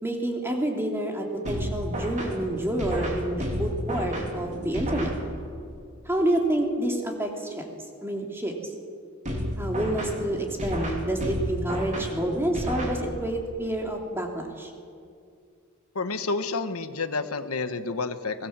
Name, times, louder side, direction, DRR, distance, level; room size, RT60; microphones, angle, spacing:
voice 1, 0.0-5.1 6.0-7.6 8.0-8.5 9.6-14.7, right 1 dB, 10° right, 1 dB, 3.0 m, -28 dB
sound 1, 1.5-5.7 9.3-13.5, equal, 35° right, 4.0 m, -32 dB
voice 2, 15.9-18.5, left 3 dB, 90° left, 9 dB, 1.3 m, -29 dB
24.5 x 19.5 x 7.5 m, 2.3 s
head